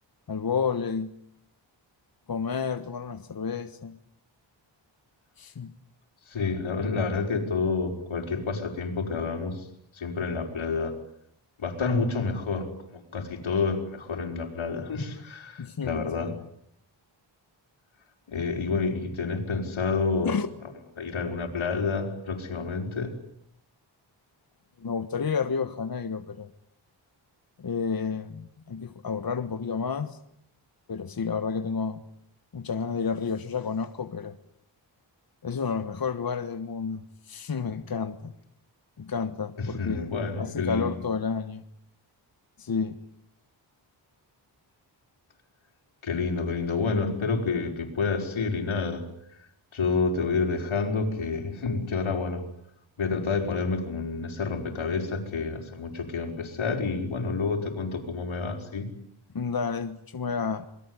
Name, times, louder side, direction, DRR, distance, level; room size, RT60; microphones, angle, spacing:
voice 1, 0.3-1.1 2.3-4.0 5.4-5.7 15.6-16.4 20.2-20.5 24.8-26.5 27.6-30.2 30.9-32.0 32.5-34.4 35.4-38.3 39.0-40.1 40.4-41.6 42.6-43.0 59.3-60.6, left 5 dB, 50° left, 9 dB, 1.4 m, -30 dB
voice 2, 6.3-9.7 9.9-10.9 11.6-16.3 18.3-20.4 21.0-23.1 39.6-40.9 46.0-49.1 49.7-52.4 53.0-58.9, left 4 dB, 85° left, 4 dB, 5.3 m, -29 dB
27.5 x 22.0 x 9.8 m, 0.73 s
wide cardioid pair, 110°, 47 cm